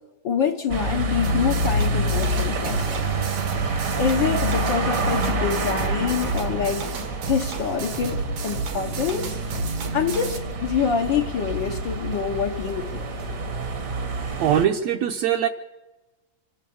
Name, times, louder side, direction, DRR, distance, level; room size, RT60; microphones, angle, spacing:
voice 1, 0.2-3.0 4.0-9.4 9.9-13.0, left 7 dB, 75° left, 0 dB, 1.0 m, -26 dB
sound 1, 0.7-14.7, right 2 dB, 50° right, 0.9 m, -27 dB
sound 2, 1.2-10.4, right 3 dB, 90° right, 3.7 m, -32 dB
voice 2, 14.0-15.5, right 10 dB, 70° right, 2 dB, 1.7 m, -23 dB
26.0 x 12.0 x 8.6 m, 1.1 s
omnidirectional pair, 3.8 m